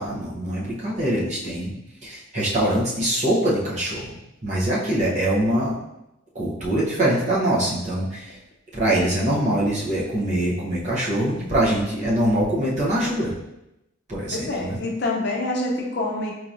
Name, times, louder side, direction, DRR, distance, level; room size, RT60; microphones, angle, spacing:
voice 1, 0.0-1.7 2.0-4.1 4.4-5.7 6.3-8.4 8.7-13.3 14.1-14.8, right 1 dB, 35° right, -6 dB, 0.9 m, -23 dB
voice 2, 14.3-16.3, left 2 dB, 55° left, 0 dB, 0.5 m, -26 dB
4.5 x 2.8 x 2.5 m, 0.90 s
head